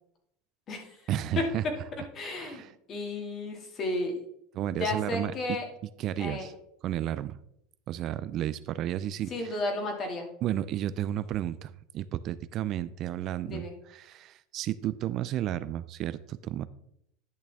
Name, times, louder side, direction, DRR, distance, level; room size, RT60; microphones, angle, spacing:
voice 1, 1.1-1.6 2.3-2.7 4.5-5.6 6.0-6.5 6.8-7.4 7.9-9.6 10.4-16.7, right 12 dB, 45° right, 15 dB, 0.4 m, -32 dB
voice 2, 2.1-4.2 4.8-5.7 6.2-6.5 9.3-10.3 13.5-13.7, left 2 dB, 35° left, 2 dB, 2.2 m, -33 dB
10.5 x 6.3 x 3.5 m, 0.74 s
supercardioid pair, 125°, 0 cm